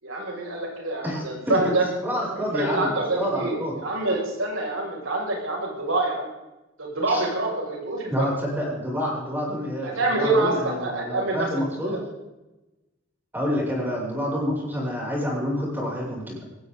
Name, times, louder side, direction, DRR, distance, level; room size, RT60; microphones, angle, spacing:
voice 1, 0.0-1.8 2.4-6.3 6.8-8.3 9.8-11.5 11.8-12.0, right 2 dB, 85° right, -2 dB, 6.9 m, -26 dB
voice 2, 1.0-3.8 7.1-7.2 8.1-12.0 13.3-16.4, equal, 10° right, -5 dB, 7.7 m, -28 dB
19.5 x 15.5 x 4.1 m, 1.0 s
head